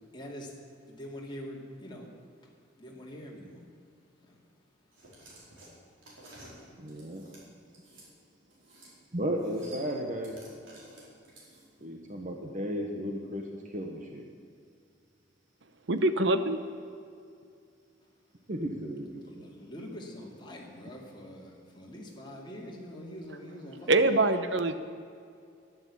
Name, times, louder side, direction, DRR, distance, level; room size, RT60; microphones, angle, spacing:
voice 1, 0.1-0.5 0.9-2.1 2.8-3.6 19.2-23.9, equal, 25° left, -2 dB, 2.5 m, -44 dB
sound 1, 4.9-8.1 8.5-8.9 9.2-11.8, right 1 dB, 85° right, 4.8 m, -52 dB
voice 2, 6.7-7.2 9.1-10.4 11.8-14.2 18.5-19.5, equal, 40° right, 2 dB, 1.2 m, -34 dB
voice 3, 15.9-16.6 23.9-24.7, right 2 dB, 65° right, 10 dB, 0.9 m, -24 dB
11.5 x 11.0 x 8.5 m, 2.4 s
head